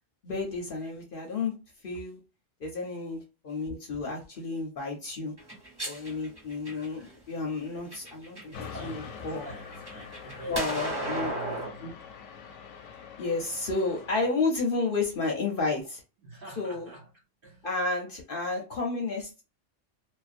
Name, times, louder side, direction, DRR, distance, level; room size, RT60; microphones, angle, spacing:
voice 1, 0.2-1.5 1.8-2.2 2.6-5.3 5.9-9.5 10.5-11.3 11.8-11.9 13.2-16.0 16.6-16.9 17.6-19.4, left 3 dB, 55° left, 0.7 m, -31 dB
sound 1, 5.4-7.1 7.7-8.6 9.0-11.7, right 1 dB, 20° right, 1.1 m, -35 dB
voice 2, 8.4-12.0 16.2-17.7, right 2 dB, 50° right, 0.9 m, -45 dB
sound 2, 8.5-14.3, left 7 dB, 90° left, 0.9 m, -45 dB
2.4 x 2.2 x 2.4 m
omnidirectional pair, 1.3 m